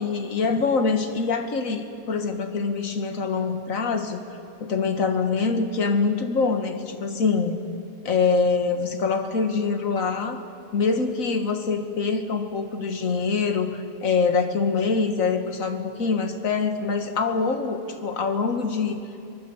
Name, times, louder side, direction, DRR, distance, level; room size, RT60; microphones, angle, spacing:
voice 1, 0.0-4.2 4.6-7.6 8.1-10.4 10.7-19.0, left 4 dB, 55° left, 6 dB, 1.8 m, -24 dB
24.0 x 22.0 x 7.1 m, 2.5 s
omnidirectional pair, 1.8 m